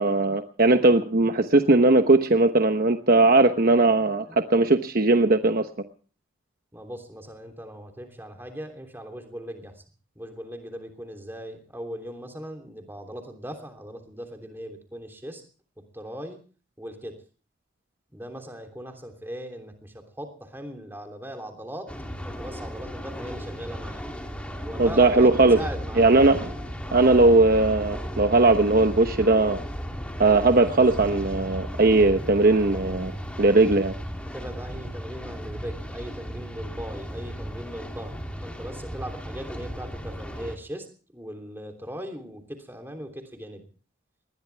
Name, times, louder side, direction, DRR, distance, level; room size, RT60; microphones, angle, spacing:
voice 1, 0.0-5.7 24.8-25.6 26.0-26.5 26.9-29.6 30.2-33.1 33.4-33.9, right 2 dB, 45° right, 7 dB, 1.0 m, -19 dB
voice 2, 6.7-9.8 10.1-15.4 15.9-16.4 16.8-17.2 18.1-21.9 22.2-24.0 24.6-26.2 34.2-40.9 41.1-43.7, equal, 10° right, 4 dB, 3.2 m, -39 dB
sound 1, 21.9-40.6, equal, 5° left, 2.8 m, -35 dB
20.0 x 20.0 x 3.4 m, 0.39 s
head